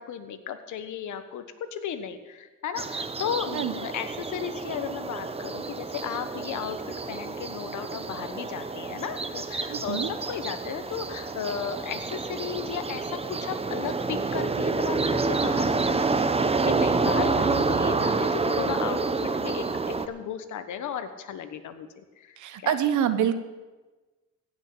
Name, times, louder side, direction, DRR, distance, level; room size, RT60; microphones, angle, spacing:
voice 1, 0.0-1.4 1.7-22.4 22.6-22.8, left 8 dB, 75° left, 10 dB, 1.3 m, -35 dB
sound 1, 2.8-20.1, right 3 dB, 20° right, 0.9 m, -28 dB
voice 2, 9.7-10.1 22.4-23.3, right 10 dB, 75° right, 11 dB, 1.0 m, -26 dB
16.5 x 6.5 x 8.9 m, 1.2 s
cardioid pair, 90°, 30 cm